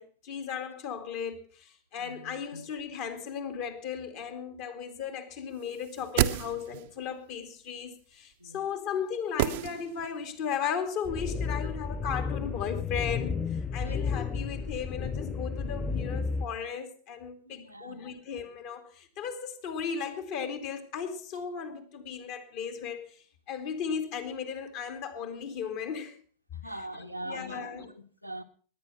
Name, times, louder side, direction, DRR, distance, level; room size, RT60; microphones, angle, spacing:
voice 1, 0.0-26.2 27.2-27.9, left 7 dB, 45° left, 2.5 m, -36 dB
voice 2, 2.0-2.6 8.4-8.8 13.8-14.0 17.4-18.0 26.5-28.4, right 1 dB, 90° right, 1.2 m, -42 dB
sound 1, 5.8-7.0 9.4-10.3 10.6-10.7, right 14 dB, 50° right, 0.8 m, -30 dB
sound 2, 11.0-16.5, left 5 dB, 15° left, 0.9 m, -32 dB
20.0 x 9.7 x 5.6 m
figure-of-eight pair, 90°, 0 cm